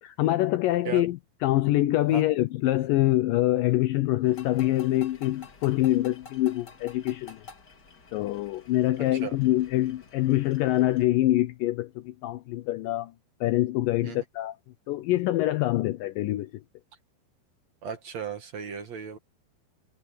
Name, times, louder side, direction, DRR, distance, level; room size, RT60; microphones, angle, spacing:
voice 1, 0.0-7.4 8.1-13.1 13.4-14.6 14.9-16.5, left 15 dB, 75° left, 2.1 m, -25 dB
sound 1, 4.2-11.0, left 4 dB, 30° left, 2.7 m, -50 dB
voice 2, 17.8-19.2, right 7 dB, 50° right, 2.6 m, -36 dB
omnidirectional pair, 4.4 m